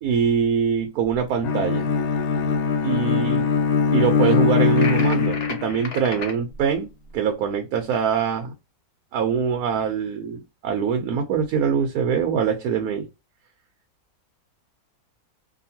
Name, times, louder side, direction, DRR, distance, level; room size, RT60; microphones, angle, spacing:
voice 1, 0.0-1.9 2.8-3.5 3.9-8.5 9.1-13.1, right 7 dB, 80° right, 1.1 m, -23 dB
Bowed string instrument, 1.4-5.8, left 5 dB, 75° left, 1.1 m, -21 dB
sound 1, 4.8-6.4, left 4 dB, 50° left, 0.9 m, -33 dB
2.8 x 2.5 x 2.7 m
omnidirectional pair, 1.6 m